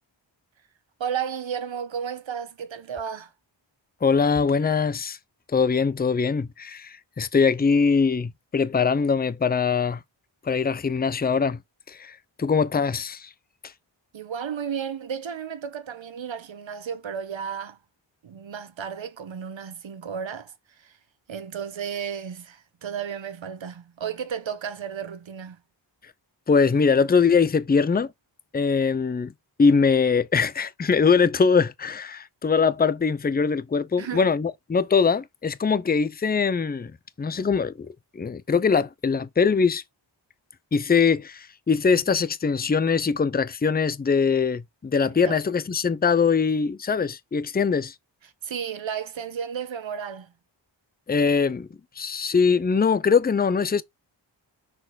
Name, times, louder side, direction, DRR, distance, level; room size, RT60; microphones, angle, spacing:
voice 1, 1.0-3.3 14.1-17.8 18.2-20.5 20.8-20.9 21.3-25.6 34.0-34.3 45.2-45.4 48.4-50.3, right 7 dB, 80° right, 1.1 m, -33 dB
voice 2, 4.0-5.2 5.5-10.0 10.4-11.6 11.9-13.3 26.5-28.1 28.5-29.3 29.6-36.9 37.2-37.9 38.1-39.8 40.7-47.9 51.1-51.7 52.0-53.8, left 5 dB, 20° left, 0.5 m, -22 dB
6.2 x 4.5 x 4.0 m
wide cardioid pair, 90°, 46 cm